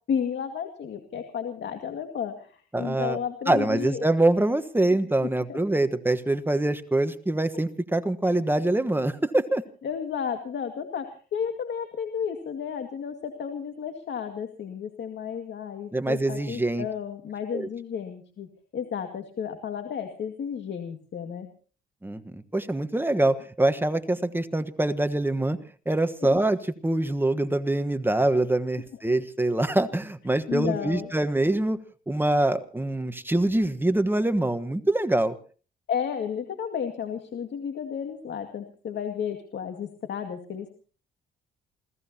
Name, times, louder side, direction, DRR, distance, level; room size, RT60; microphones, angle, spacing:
voice 1, 0.1-4.0 5.2-5.6 7.5-7.6 9.8-21.5 30.5-31.1 35.9-40.7, left 7 dB, 60° left, 5 dB, 2.2 m, -32 dB
voice 2, 2.7-3.2 3.5-9.6 15.9-16.9 17.5-17.7 22.0-25.6 25.8-31.8 32.1-35.3, right 2 dB, 10° right, 10 dB, 1.3 m, -24 dB
28.0 x 17.5 x 2.9 m, 0.40 s
cardioid pair, 90°, 20 cm